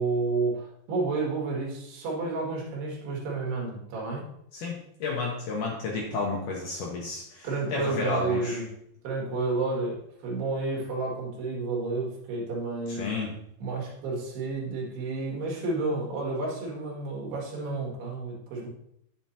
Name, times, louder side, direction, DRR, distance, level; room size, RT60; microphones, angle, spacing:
voice 1, 0.0-4.3 7.4-8.7 9.0-13.1 13.6-18.7, right 3 dB, 75° right, -2 dB, 4.0 m, -31 dB
voice 2, 4.5-8.6 12.9-13.3, left 3 dB, 75° left, -1 dB, 2.0 m, -31 dB
8.9 x 7.3 x 2.8 m, 0.73 s
omnidirectional pair, 4.8 m